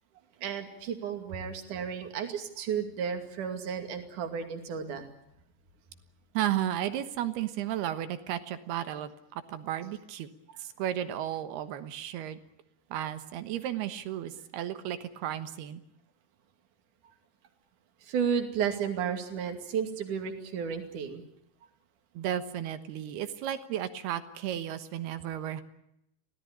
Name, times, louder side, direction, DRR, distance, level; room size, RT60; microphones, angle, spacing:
voice 1, 0.4-5.1 18.0-21.2, right 7 dB, 50° right, 6 dB, 3.5 m, -33 dB
voice 2, 6.3-10.3 10.6-12.4 12.9-15.8 22.1-25.6, right 11 dB, 70° right, 11 dB, 3.0 m, -34 dB
25.0 x 17.0 x 9.9 m, 0.79 s
omnidirectional pair, 5.2 m